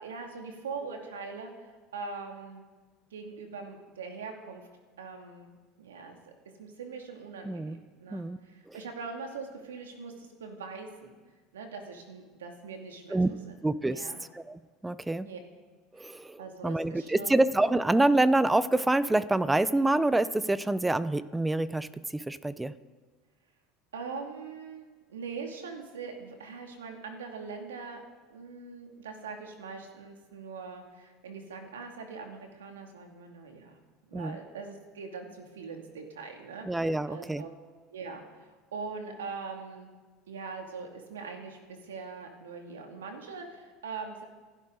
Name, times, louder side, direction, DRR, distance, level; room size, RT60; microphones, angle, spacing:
voice 1, 0.0-2.6 3.1-4.7 5.0-11.2 11.5-13.6 13.9-14.2 15.2-15.4 16.0-17.4 23.9-28.0 28.3-33.8 34.1-37.5 37.9-39.9 40.3-44.3, right 4 dB, 85° right, 3 dB, 2.5 m, -42 dB
voice 2, 7.4-7.8 8.1-8.4 8.7-8.8 13.1-13.3 13.6-14.0 14.5-15.3 16.0-22.7 34.1-34.4 36.7-37.4, right 2 dB, 10° right, 16 dB, 0.8 m, -26 dB
27.5 x 11.5 x 4.0 m, 1.3 s
hypercardioid pair, 80°, 0 cm